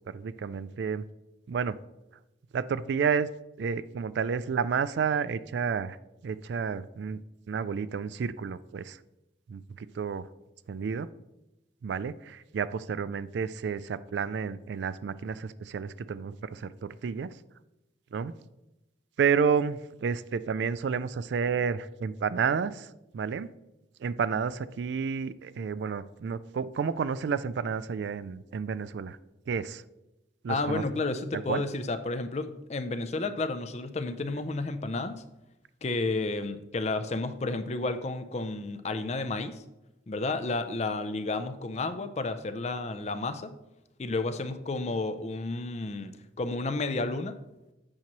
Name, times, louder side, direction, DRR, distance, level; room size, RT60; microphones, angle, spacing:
voice 1, 0.1-1.0 1.5-1.8 2.5-3.3 3.6-6.0 6.2-7.2 7.5-9.0 9.5-10.3 10.7-11.1 11.8-17.3 18.1-18.3 19.2-22.9 23.1-23.5 24.0-29.2 29.5-29.8 30.4-30.8 31.5-31.6, right 6 dB, 65° right, 16 dB, 0.3 m, -30 dB
voice 2, 30.5-35.2 35.8-39.6 40.1-43.6 44.0-46.1 46.4-47.4, left 3 dB, 35° left, 10 dB, 0.4 m, -31 dB
8.6 x 3.0 x 5.9 m, 0.95 s
head